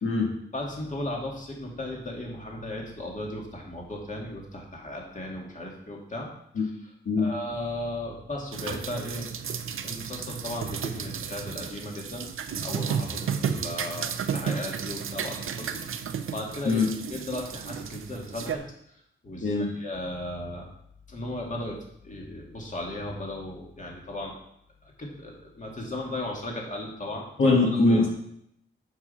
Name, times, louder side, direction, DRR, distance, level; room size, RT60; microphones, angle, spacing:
voice 1, 0.0-0.3 7.1-7.3 16.7-16.9 19.4-19.7 27.4-28.1, left 3 dB, 75° left, -2 dB, 1.8 m, -22 dB
voice 2, 0.5-6.3 6.6-6.9 7.2-9.2 9.8-15.8 16.3-18.6 19.2-20.7 21.1-21.8 22.0-24.3 25.0-28.0, left 1 dB, 35° left, -1 dB, 2.4 m, -36 dB
sound 1, 8.5-18.6, right 7 dB, 85° right, 0.6 m, -33 dB
7.2 x 6.1 x 5.5 m, 0.73 s
cardioid pair, 75°, 21 cm